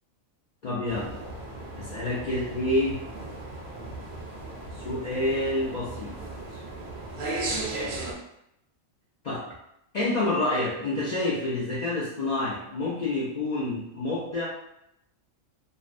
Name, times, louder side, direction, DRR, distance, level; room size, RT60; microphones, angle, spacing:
voice 1, 0.6-1.1 1.8-3.0 4.8-6.2 9.2-9.5 9.9-14.5, left 2 dB, 80° left, -7 dB, 0.3 m, -28 dB
sound 1, 0.8-8.1, right 2 dB, 60° right, 0.5 m, -36 dB
2.5 x 2.1 x 2.4 m, 0.78 s
omnidirectional pair, 1.4 m